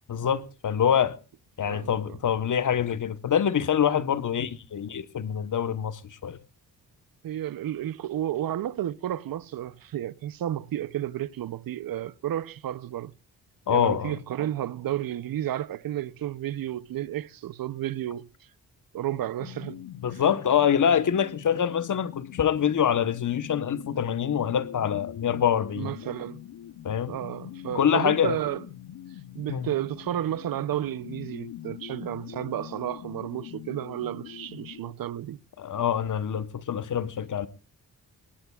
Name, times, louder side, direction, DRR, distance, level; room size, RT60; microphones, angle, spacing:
voice 1, 0.1-1.2 1.6-6.4 13.7-14.2 20.0-25.9 26.8-27.2 27.7-28.4 29.5-29.7 35.6-37.5, left 8 dB, 55° left, 1.1 m, -25 dB
voice 2, 7.2-13.1 13.7-18.3 18.9-19.8 20.1-20.2 25.8-26.4 27.1-28.6 29.3-35.4, right 12 dB, 65° right, 0.7 m, -32 dB
sound 1, 19.4-34.9, left 12 dB, 80° left, 0.9 m, -43 dB
23.0 x 19.0 x 2.3 m
cardioid pair, 80°, 36 cm